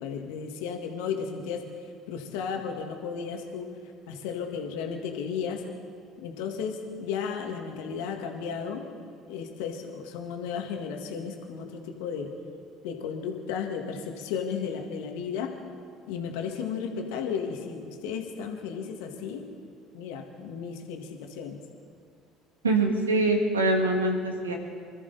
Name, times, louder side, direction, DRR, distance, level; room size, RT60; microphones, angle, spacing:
voice 1, 0.0-1.6 2.1-3.7 4.1-5.6 6.2-8.9 9.3-12.3 12.8-15.5 16.1-19.5 19.9-21.6, left 6 dB, 70° left, 4 dB, 1.9 m, -34 dB
voice 2, 22.6-24.5, right 2 dB, 85° right, 2 dB, 2.0 m, -24 dB
26.0 x 13.5 x 4.1 m, 2.2 s
hypercardioid pair, 60°, 0 cm